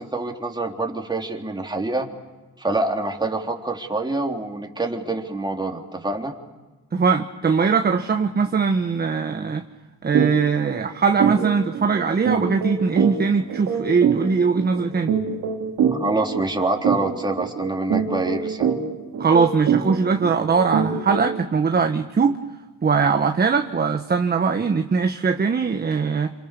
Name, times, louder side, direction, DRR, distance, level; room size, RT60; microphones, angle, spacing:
voice 1, 0.0-2.1 2.6-6.3 15.9-18.7, right 2 dB, 15° right, 1 dB, 3.7 m, -26 dB
voice 2, 6.9-9.6 10.0-15.1 19.2-22.4 22.8-26.3, right 5 dB, 30° right, 5 dB, 1.4 m, -21 dB
sound 1, 10.1-10.3 10.7-10.8 11.2-21.4, right 7 dB, 75° right, 3.1 m, -25 dB
27.5 x 27.5 x 6.9 m, 1.2 s
cardioid pair, 90°, 30 cm